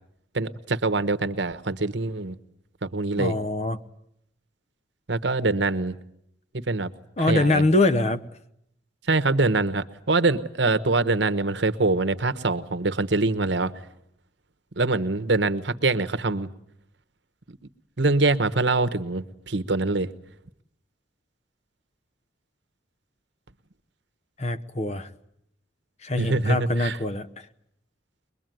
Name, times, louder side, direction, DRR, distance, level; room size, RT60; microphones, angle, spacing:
voice 1, 0.3-2.4 2.8-3.4 5.1-5.9 6.5-6.9 7.3-7.7 9.1-13.7 14.8-16.5 18.0-20.1 26.2-27.0, right 3 dB, 70° right, 1.2 m, -24 dB
voice 2, 3.2-3.8 7.2-8.2 24.4-25.1 26.0-27.5, left 2 dB, 35° left, 1.0 m, -24 dB
22.5 x 22.0 x 9.2 m
head